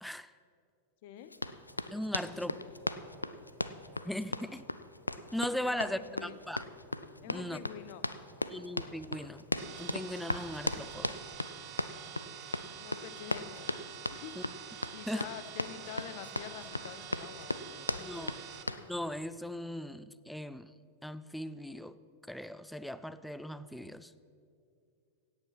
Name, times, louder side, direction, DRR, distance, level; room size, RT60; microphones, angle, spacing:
voice 1, 1.0-1.3 2.2-3.0 5.6-6.4 7.2-8.0 12.8-13.7 14.1-14.4 14.9-18.4, left 10 dB, 50° left, 13 dB, 0.8 m, -47 dB
Run, 1.3-18.9, left 2 dB, 85° left, 0.4 m, -37 dB
voice 2, 1.9-2.6 4.0-4.6 5.3-6.6 7.3-7.6 8.5-9.4 9.8-11.2 14.4-14.5 15.1-15.3 17.9-18.3 18.8-20.7 21.0-22.0 22.3-24.1, left 1 dB, ahead, 15 dB, 0.4 m, -38 dB
sound 1, 9.6-18.6, right 9 dB, 40° right, 1.3 m, -47 dB
16.5 x 8.6 x 5.9 m, 2.4 s
figure-of-eight pair, 90°, 0 cm